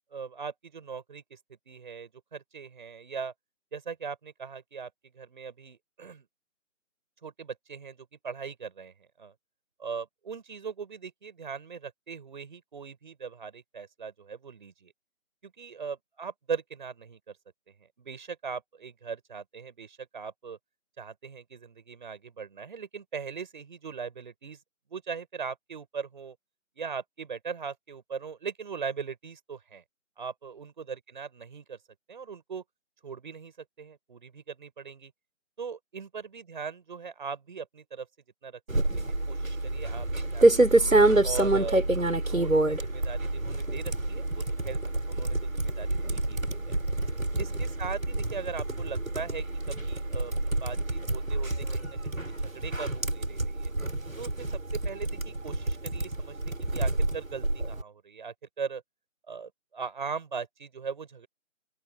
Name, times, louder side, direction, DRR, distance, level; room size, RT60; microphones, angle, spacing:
voice 1, 0.1-1.4 1.7-3.3 3.7-6.3 7.2-9.3 9.8-14.9 15.4-17.4 17.8-20.6 21.0-24.6 24.9-26.4 26.8-29.8 30.2-31.8 32.1-32.6 33.0-35.1 35.6-38.1 38.4-38.6 38.9-40.8 41.2-46.8 47.4-53.7 54.2-58.8 59.3-61.3, right 6 dB, 35° right, 6.0 m, -40 dB
sound 1, 38.7-57.8, right 2 dB, 85° right, 5.0 m, -27 dB
open air
figure-of-eight pair, 160°, 39 cm